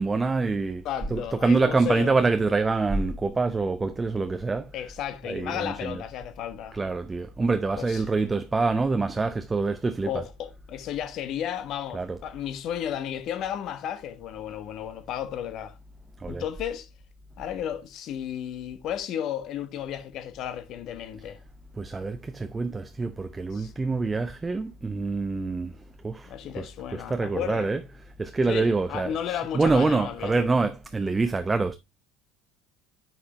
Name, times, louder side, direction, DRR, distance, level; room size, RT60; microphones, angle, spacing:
voice 1, 0.0-0.8 1.1-4.7 5.3-6.0 6.7-10.2 11.9-12.2 16.2-16.4 21.8-27.8 28.2-31.8, right 3 dB, 15° right, 0.7 m, -26 dB
voice 2, 0.8-2.2 4.7-6.8 7.8-8.0 10.0-15.8 16.3-16.9 17.4-21.4 23.5-23.7 26.3-27.7 28.5-30.3, left 10 dB, 45° left, 1.2 m, -33 dB
9.6 x 5.8 x 3.0 m
figure-of-eight pair, 65°, 0 cm